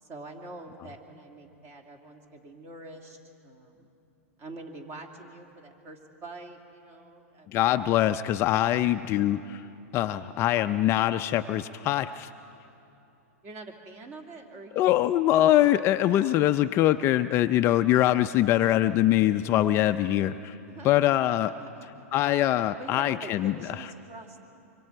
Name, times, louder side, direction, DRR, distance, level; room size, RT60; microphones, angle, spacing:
voice 1, 0.0-3.2 3.4-3.9 4.4-7.5 12.8-13.0 13.4-14.9 20.7-22.1 22.8-24.4, right 2 dB, 30° right, 3 dB, 2.7 m, -45 dB
voice 2, 7.5-9.6 9.9-12.3 14.8-20.6 20.8-21.5 22.1-23.5, left 13 dB, 30° left, 10 dB, 0.4 m, -23 dB
25.5 x 24.5 x 4.6 m, 2.8 s
hypercardioid pair, 125°, 8 cm